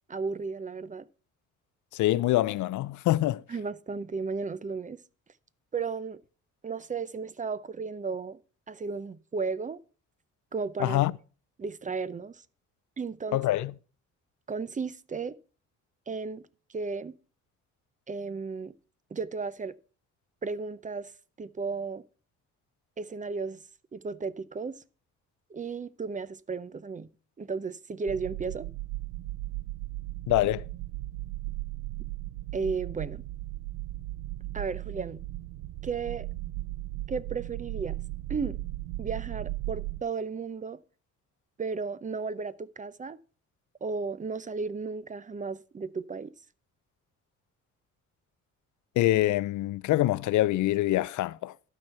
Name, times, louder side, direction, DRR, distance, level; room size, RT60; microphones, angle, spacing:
voice 1, 0.1-1.1 3.5-5.0 5.7-6.2 6.6-8.4 8.7-9.8 10.5-11.0 11.6-12.4 13.0-13.4 14.5-15.4 16.1-16.4 16.7-17.1 18.1-18.7 19.1-19.7 20.4-21.1 21.4-22.0 23.0-23.6 23.9-24.8 25.5-27.1 27.4-28.7 32.5-33.2 34.5-35.2 35.8-36.3 37.1-38.0 38.3-38.6 39.0-40.8 41.6-43.2 43.8-46.3, right 4 dB, 25° right, 0.6 m, -34 dB
voice 2, 1.9-3.4 10.8-11.1 13.3-13.7 30.3-30.7 49.0-51.7, left 15 dB, 75° left, 0.5 m, -25 dB
sound 1, 28.1-40.0, right 18 dB, 80° right, 0.5 m, -36 dB
12.0 x 4.7 x 6.8 m
cardioid pair, 90°, 30 cm